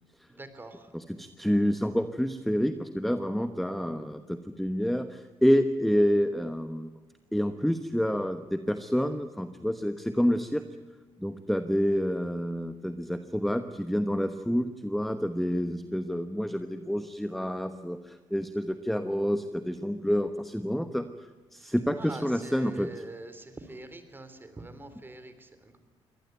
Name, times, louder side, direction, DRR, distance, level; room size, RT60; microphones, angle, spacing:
voice 1, 0.3-0.9 22.0-25.8, right 2 dB, 20° right, 10 dB, 3.5 m, -44 dB
voice 2, 0.9-6.9 7.3-10.6 11.2-21.0 21.5-23.0, equal, ahead, 10 dB, 1.0 m, -28 dB
24.0 x 18.5 x 9.3 m, 1.4 s
cardioid pair, 105°, 11 cm